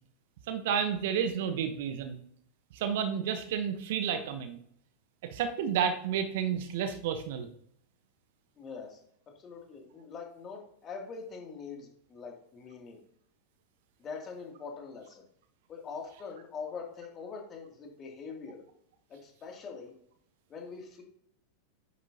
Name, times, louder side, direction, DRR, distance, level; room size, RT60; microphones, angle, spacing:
voice 1, 0.5-2.2 2.7-4.6 5.2-7.5, right 8 dB, 55° right, 9 dB, 1.1 m, -31 dB
voice 2, 8.6-9.0 9.3-13.0 14.0-15.2 15.7-18.6 19.1-19.9 20.5-21.0, left 5 dB, 25° left, 0 dB, 2.7 m, -43 dB
10.0 x 9.5 x 2.9 m, 0.68 s
figure-of-eight pair, 90°, 0 cm